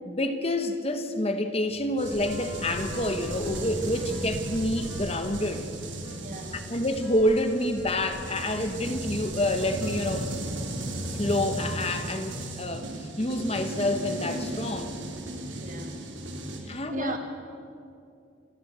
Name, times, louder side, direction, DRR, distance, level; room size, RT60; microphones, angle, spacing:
voice 1, 0.0-5.7 6.7-10.6 11.1-14.9 16.7-17.2, left 1 dB, 30° left, 8 dB, 1.1 m, -28 dB
Bass guitar, 1.7-2.4 2.8-2.9 3.2-4.8 5.6-7.2 8.0-9.1 9.4-11.3, equal, 25° right, 3.5 m, -52 dB
sound 1, 2.0-16.6, right 1 dB, 85° right, 2.8 m, -35 dB
sound 2, 2.1-10.3, left 3 dB, 90° left, 1.0 m, -45 dB
voice 2, 6.1-6.7 15.5-16.0 16.6-17.2, right 2 dB, 45° right, 5 dB, 2.0 m, -38 dB
27.5 x 11.5 x 8.1 m, 2.5 s
head